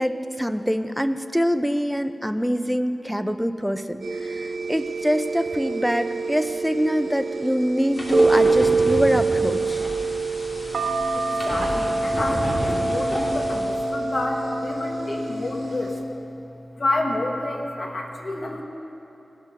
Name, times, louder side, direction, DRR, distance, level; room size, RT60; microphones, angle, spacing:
voice 1, 0.0-9.9, equal, ahead, 9 dB, 0.6 m, -25 dB
sound 1, 4.0-16.0, right 3 dB, 90° right, 1.3 m, -25 dB
sound 2, 7.9-13.8, equal, 30° left, 2.9 m, -31 dB
voice 2, 11.1-15.9 16.8-18.6, left 2 dB, 45° left, 1 dB, 1.4 m, -29 dB
19.5 x 6.8 x 5.9 m, 3.0 s
wide cardioid pair, 65°, 0 cm